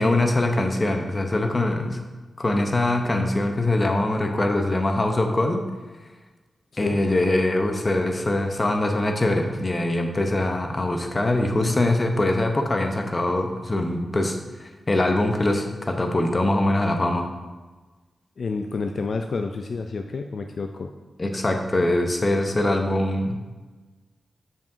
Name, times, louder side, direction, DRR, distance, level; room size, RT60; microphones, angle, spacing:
voice 1, 0.0-2.0 2.4-5.6 6.8-17.3 21.2-23.4, left 1 dB, 30° left, 4 dB, 0.7 m, -23 dB
voice 2, 18.4-20.9, left 4 dB, 60° left, 5 dB, 0.3 m, -29 dB
6.9 x 5.7 x 2.6 m, 1.3 s
wide cardioid pair, 100°, 0 cm